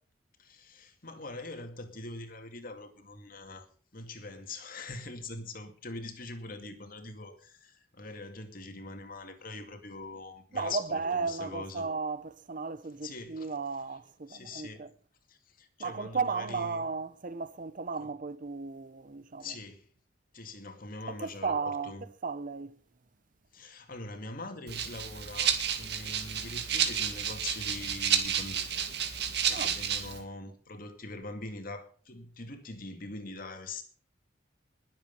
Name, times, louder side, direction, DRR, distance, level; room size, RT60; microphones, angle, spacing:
voice 1, 0.4-3.7 3.9-11.9 13.0-13.5 14.3-14.9 15.3-16.8 18.0-18.1 19.4-19.9 20.3-22.1 23.5-28.8 29.4-33.8, left 2 dB, 50° left, 2.4 m, -43 dB
voice 2, 10.5-14.9 15.8-19.5 21.1-22.8 29.5-29.8, right 4 dB, 45° right, 0.8 m, -35 dB
Rattle (instrument), 24.7-30.2, right 8 dB, 65° right, 2.1 m, -31 dB
20.5 x 8.0 x 5.4 m
head